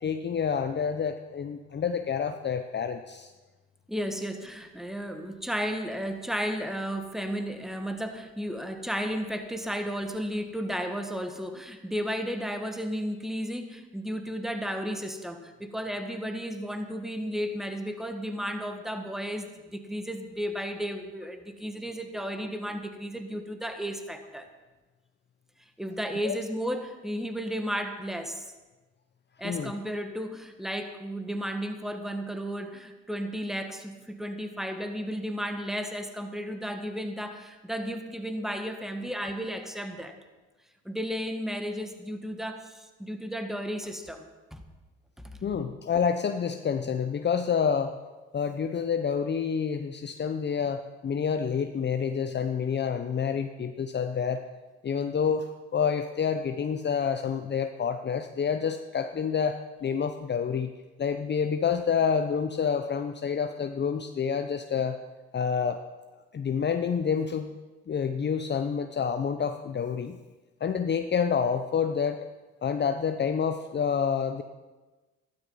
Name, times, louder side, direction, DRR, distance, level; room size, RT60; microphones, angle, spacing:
voice 1, 0.0-3.3 26.2-26.3 29.4-29.7 45.4-48.0 48.3-54.4 54.8-60.7 61.0-65.0 65.3-65.8 66.3-67.5 67.9-70.2 70.6-72.3 72.6-74.4, left 6 dB, 35° left, 7 dB, 0.8 m, -28 dB
voice 2, 3.9-24.5 25.8-28.5 29.4-40.2 40.9-44.6 45.2-45.5, equal, ahead, 6 dB, 1.7 m, -33 dB
13.0 x 11.5 x 5.7 m, 1.2 s
supercardioid pair, 70°, 29 cm